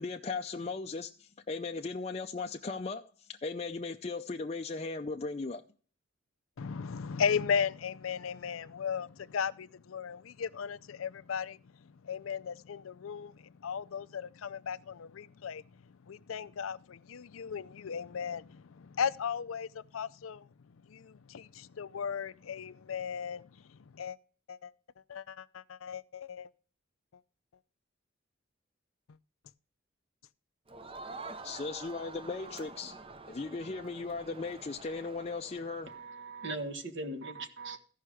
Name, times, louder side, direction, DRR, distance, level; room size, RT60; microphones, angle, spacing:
voice 1, 0.0-5.6 31.4-33.0 33.3-35.9, left 3 dB, 30° left, 0.5 m, -37 dB
voice 2, 6.6-11.6 12.0-15.6 16.1-20.5 20.9-23.4 23.9-24.2 24.5-24.7 25.1-26.5, left 6 dB, 85° left, 0.5 m, -36 dB
Crowd, 30.7-36.0, right 3 dB, 25° right, 0.6 m, -47 dB
voice 3, 35.9-37.8, right 2 dB, 60° right, 1.5 m, -39 dB
14.5 x 5.6 x 4.9 m
head